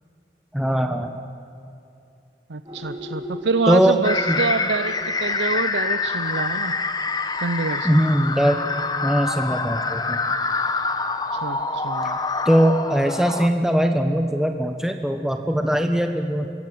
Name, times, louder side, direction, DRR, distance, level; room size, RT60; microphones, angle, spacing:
voice 1, 0.5-1.1 3.7-4.0 4.3-4.4 7.8-8.6 9.0-10.2 12.4-16.5, equal, 5° right, 5 dB, 1.2 m, -20 dB
voice 2, 2.5-6.7 7.4-8.0 11.3-12.2, right 4 dB, 90° right, 11 dB, 0.7 m, -26 dB
sound 1, 2.6-8.6, equal, 25° right, 4.1 m, -41 dB
sound 2, 4.0-13.5, left 3 dB, 20° left, 1.0 m, -26 dB
26.0 x 21.5 x 9.3 m, 2.8 s
head